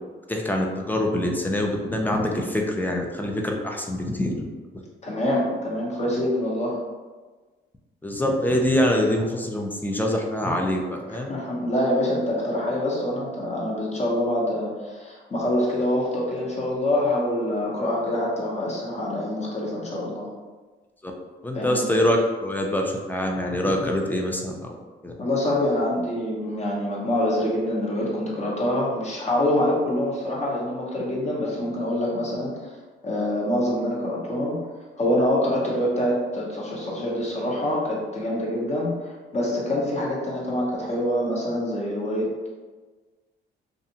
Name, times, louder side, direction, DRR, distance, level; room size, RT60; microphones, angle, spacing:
voice 1, 0.3-4.5 8.0-11.3 21.0-21.1 21.4-24.8 25.0-25.1, left 1 dB, 10° left, 1 dB, 0.4 m, -24 dB
voice 2, 5.0-6.8 11.1-20.3 21.5-21.9 25.2-32.8 33.0-34.6 35.0-42.5, left 1 dB, 35° left, -4 dB, 0.9 m, -25 dB
2.5 x 2.4 x 2.7 m, 1.3 s
cardioid pair, 90°, 20 cm